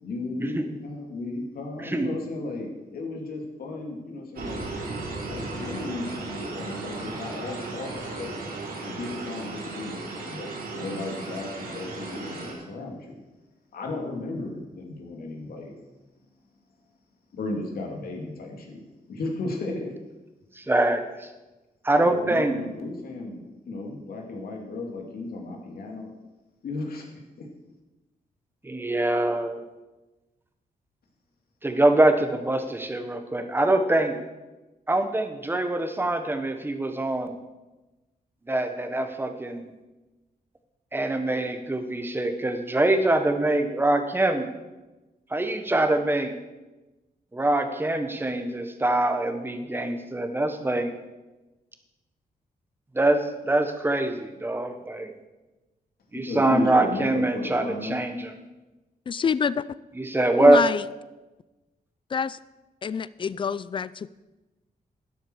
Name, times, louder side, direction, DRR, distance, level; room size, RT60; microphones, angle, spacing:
voice 1, 0.0-4.7 5.3-8.4 8.8-13.2 13.7-15.9 17.3-18.8 19.1-19.9 21.9-26.1 26.6-27.1 27.4-27.5 56.1-58.0, left 2 dB, 80° left, 1 dB, 2.7 m, -34 dB
sound 1, 4.4-12.5, right 3 dB, 80° right, 3.7 m, -36 dB
voice 2, 20.6-21.3 21.8-22.6 28.6-29.6 31.6-34.2 34.9-37.3 38.5-39.7 40.9-44.5 45.3-46.3 47.3-50.9 52.9-55.1 56.1-58.4 60.0-60.6, right 2 dB, 15° right, 7 dB, 1.2 m, -24 dB
voice 3, 59.1-59.6 60.4-60.8 62.1-62.4 62.8-64.1, left 6 dB, 35° left, 18 dB, 0.4 m, -26 dB
12.5 x 11.0 x 4.8 m, 1.1 s
wide cardioid pair, 130°, 15 cm